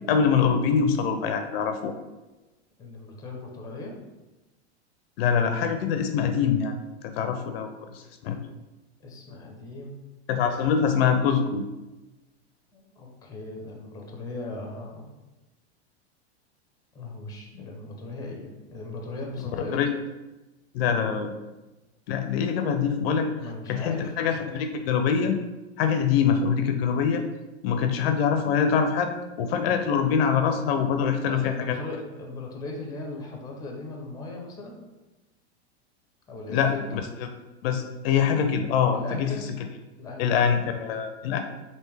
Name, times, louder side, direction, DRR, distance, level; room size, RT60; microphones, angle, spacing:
voice 1, 0.1-1.9 5.2-6.7 7.0-8.4 10.3-11.6 19.7-19.9 20.7-21.3 22.1-23.3 23.7-25.4 25.8-27.2 27.6-29.1 29.4-31.8 36.5-37.0 37.6-39.3 40.2-41.4, left 7 dB, 60° left, 6 dB, 0.5 m, -24 dB
voice 2, 2.8-4.0 9.0-9.9 12.7-15.1 16.9-19.8 23.4-24.1 31.3-34.7 36.3-36.8 38.9-39.4 40.0-40.2 41.2-41.4, left 2 dB, 10° left, 1 dB, 0.6 m, -38 dB
3.3 x 2.6 x 3.2 m, 1.1 s
hypercardioid pair, 120°, 34 cm